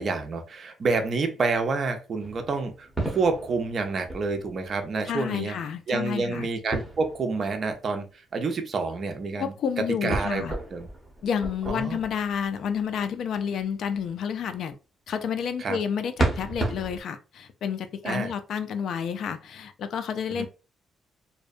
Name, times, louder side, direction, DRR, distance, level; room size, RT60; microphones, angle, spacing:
voice 1, 0.0-5.6 5.9-10.9 11.7-12.0 15.6-15.8 18.0-18.3 20.4-20.5, right 4 dB, 50° right, 0.5 m, -28 dB
sound 1, 2.2-5.0 6.7-7.8 10.1-12.8 16.2-17.0, right 2 dB, 5° right, 1.0 m, -33 dB
voice 2, 5.1-6.5 9.4-10.5 11.2-14.8 15.1-20.5, left 7 dB, 70° left, 0.3 m, -30 dB
2.7 x 2.1 x 2.4 m
cardioid pair, 90°, 0 cm